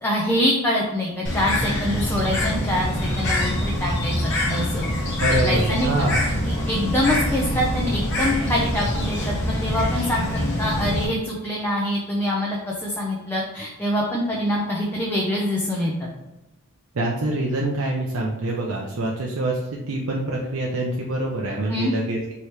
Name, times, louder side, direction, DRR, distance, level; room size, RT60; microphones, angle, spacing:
voice 1, 0.0-2.9 3.2-4.9 5.4-5.9 6.4-16.1 21.7-21.9, left 1 dB, 10° left, -4 dB, 0.5 m, -25 dB
Bird, 1.2-11.0, left 1 dB, 55° left, 1.1 m, -24 dB
voice 2, 5.2-6.3 16.9-22.3, right 1 dB, 70° right, -2 dB, 0.6 m, -25 dB
4.6 x 3.0 x 3.3 m, 1.0 s
head